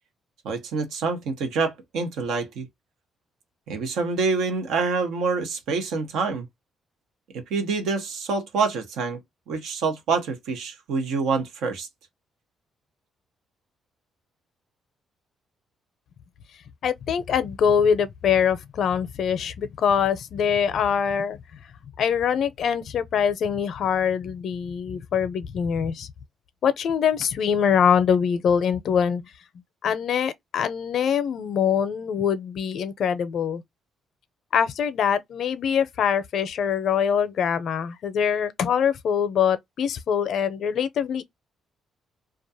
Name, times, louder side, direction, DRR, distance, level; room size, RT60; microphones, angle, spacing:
voice 1, 0.4-2.7 3.7-6.4 7.3-9.2 9.5-11.9, right 4 dB, 85° right, 0.9 m, -26 dB
voice 2, 16.8-21.4 22.0-26.1 26.6-29.3 29.8-33.6 34.5-41.2, left 7 dB, 65° left, 0.5 m, -23 dB
2.4 x 2.3 x 2.6 m
cardioid pair, 90°, 0 cm